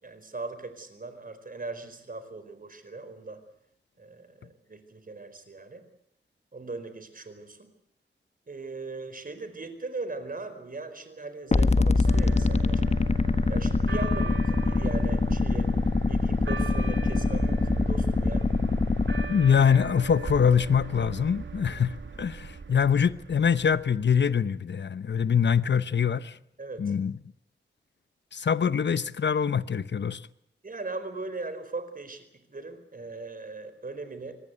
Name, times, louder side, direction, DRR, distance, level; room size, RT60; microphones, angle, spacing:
voice 1, 0.0-3.4 4.0-5.8 6.5-7.7 8.5-12.8 13.5-15.7 16.1-18.5 26.6-26.9 30.6-34.3, right 3 dB, 50° right, 4.6 m, -39 dB
sound 1, 11.5-19.3, left 3 dB, 35° left, 1.3 m, -24 dB
sound 2, 12.0-24.5, right 5 dB, 80° right, 2.6 m, -38 dB
voice 2, 19.3-26.4 26.8-27.1 28.3-30.2, left 7 dB, 70° left, 1.0 m, -24 dB
25.0 x 19.5 x 8.2 m
wide cardioid pair, 80°, 19 cm